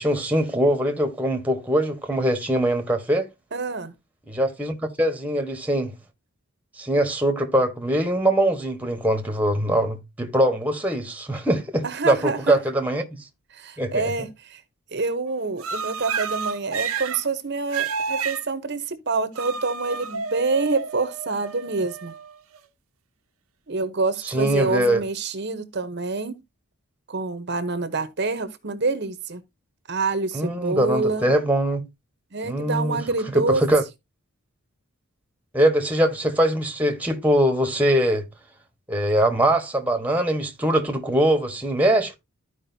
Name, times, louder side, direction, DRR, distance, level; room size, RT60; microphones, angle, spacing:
voice 1, 0.0-3.3 4.3-5.9 6.8-13.0 13.8-14.1 24.3-25.0 30.3-31.8 32.5-33.0 33.3-33.8 35.5-38.2 38.9-42.2, right 1 dB, 5° right, 1.2 m, -22 dB
voice 2, 3.5-3.9 11.8-12.6 13.5-14.6 14.9-22.1 23.7-26.4 27.1-29.4 29.9-31.3 32.3-33.6, right 3 dB, 50° right, 0.9 m, -27 dB
sound 1, 15.6-17.2 17.7-18.4 19.3-22.6, right 6 dB, 85° right, 0.8 m, -30 dB
13.5 x 4.9 x 2.7 m
head